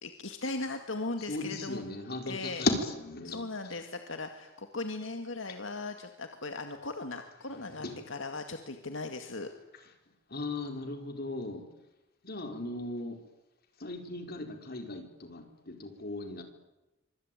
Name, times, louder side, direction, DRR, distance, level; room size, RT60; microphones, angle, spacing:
voice 1, 0.0-1.8 2.3-2.7 3.2-9.5, left 3 dB, 75° left, 6 dB, 2.1 m, -38 dB
voice 2, 1.3-3.4 7.7-8.0 10.3-11.7 12.2-13.2 13.8-16.4, left 2 dB, 55° left, 5 dB, 4.3 m, -36 dB
25.5 x 25.0 x 9.1 m, 0.99 s
head